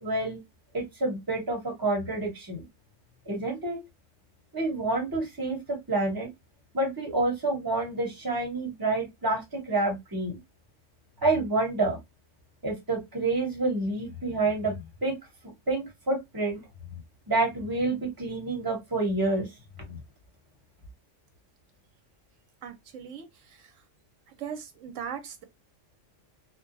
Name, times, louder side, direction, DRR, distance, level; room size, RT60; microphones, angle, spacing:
voice 1, 0.0-0.4 0.7-2.6 3.3-3.8 4.5-6.3 6.7-10.4 11.2-12.0 12.6-15.2 15.7-16.6 17.3-19.5 19.9-20.0, right 2 dB, 20° right, 1.0 m, -28 dB
voice 2, 22.6-23.7 24.4-25.4, right 8 dB, 85° right, 1.0 m, -39 dB
2.8 x 2.2 x 2.5 m
omnidirectional pair, 1.3 m